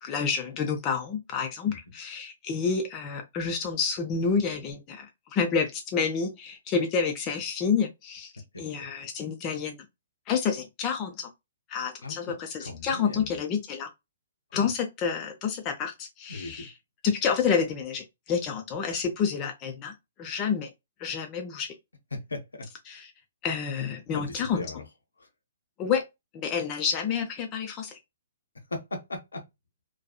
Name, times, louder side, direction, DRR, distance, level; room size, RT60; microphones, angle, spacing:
voice 1, 0.0-8.3 8.6-9.8 10.3-11.3 11.7-13.9 14.5-16.7 17.0-20.7 21.0-21.7 22.9-23.1 23.4-24.7 25.8-26.0 26.3-28.0, left 6 dB, 25° left, 0.4 m, -29 dB
voice 2, 12.6-13.3 14.5-14.7 16.3-16.7 22.1-22.7 24.1-24.8 25.2-25.3 28.7-29.4, left 2 dB, 70° left, 0.7 m, -37 dB
2.6 x 2.3 x 2.2 m
figure-of-eight pair, 120°, 0 cm